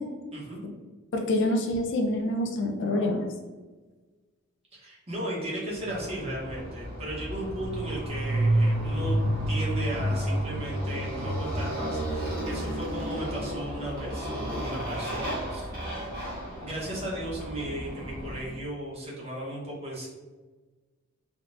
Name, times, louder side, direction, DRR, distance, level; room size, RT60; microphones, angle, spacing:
voice 1, 1.1-3.3, left 1 dB, 55° left, 4 dB, 0.3 m, -26 dB
voice 2, 4.8-9.2 9.5-15.6 16.6-20.1, right 1 dB, 25° right, -5 dB, 0.9 m, -36 dB
Motorcycle, 5.8-18.5, right 1 dB, 45° right, 1.5 m, -31 dB
3.6 x 2.2 x 2.5 m, 1.3 s
head